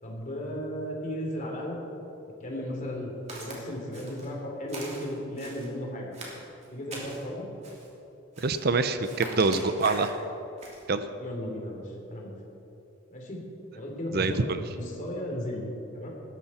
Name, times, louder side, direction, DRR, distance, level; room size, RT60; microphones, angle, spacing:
voice 1, 0.0-1.8 2.4-3.1 3.4-6.1 6.7-7.5 11.2-12.3 13.1-13.4 13.7-14.4 14.7-16.1, equal, 40° left, -1 dB, 3.1 m, -35 dB
Walk footsteps, 3.3-3.6 3.9-4.3 4.7-5.7 6.1-7.2 7.6-7.9 8.3-8.7 9.0-10.2 10.6-10.8, right 2 dB, 35° right, 3.0 m, -42 dB
voice 2, 8.4-10.2 10.9-11.0 14.1-14.6, right 3 dB, 50° right, 10 dB, 0.6 m, -25 dB
18.5 x 13.5 x 4.3 m, 2.9 s
head